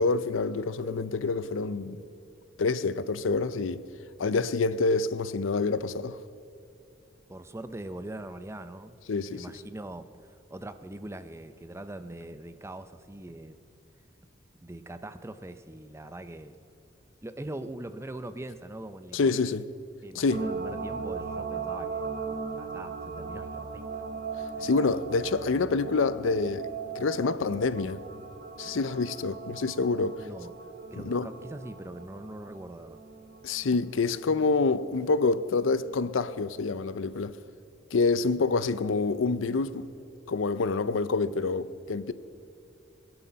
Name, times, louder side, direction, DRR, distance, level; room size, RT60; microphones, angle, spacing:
voice 1, 0.0-2.0 2.6-3.8 4.2-6.2 9.1-9.4 19.1-19.6 20.1-20.4 24.6-26.7 27.0-28.0 28.6-30.3 31.0-31.3 33.4-37.4 37.9-39.9 40.3-42.1, left 4 dB, 80° left, 0.5 m, -27 dB
voice 2, 7.3-9.0 9.3-13.6 14.6-16.6 17.2-19.4 20.0-22.1 22.6-24.0 24.6-24.7 30.2-30.5 30.9-33.0, right 1 dB, 15° right, 0.6 m, -42 dB
sound 1, 20.3-36.0 36.4-36.5, right 5 dB, 45° right, 1.2 m, -39 dB
21.0 x 11.0 x 5.6 m
head